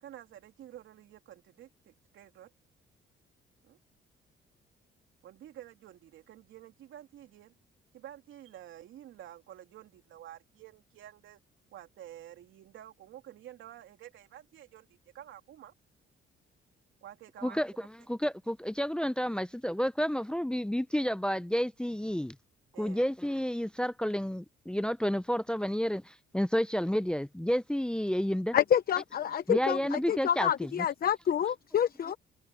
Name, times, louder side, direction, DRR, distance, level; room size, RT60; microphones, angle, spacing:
voice 1, 0.0-2.5 3.6-3.8 5.2-7.5 7.9-11.4 11.7-15.7 17.0-17.6 22.7-23.0 29.1-29.4, right 12 dB, 80° right, 3.0 m, -50 dB
voice 2, 17.4-22.4 22.8-28.6 29.5-30.9, equal, 5° left, 0.6 m, -30 dB
voice 3, 28.5-32.2, left 9 dB, 50° left, 0.8 m, -28 dB
cardioid pair, 90°, 20 cm